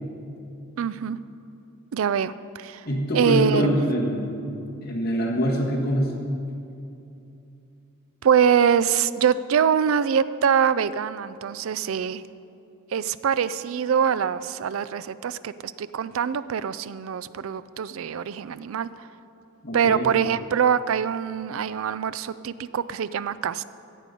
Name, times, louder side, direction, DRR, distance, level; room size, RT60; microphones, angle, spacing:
voice 1, 0.8-1.2 1.9-2.9 3.1-3.8 8.2-12.2 12.9-18.9 19.7-23.6, right 7 dB, 70° right, 16 dB, 0.4 m, -24 dB
voice 2, 2.8-4.4 4.8-6.1 19.6-20.1, equal, 45° left, -3 dB, 1.7 m, -24 dB
14.0 x 8.2 x 5.3 m, 2.7 s
head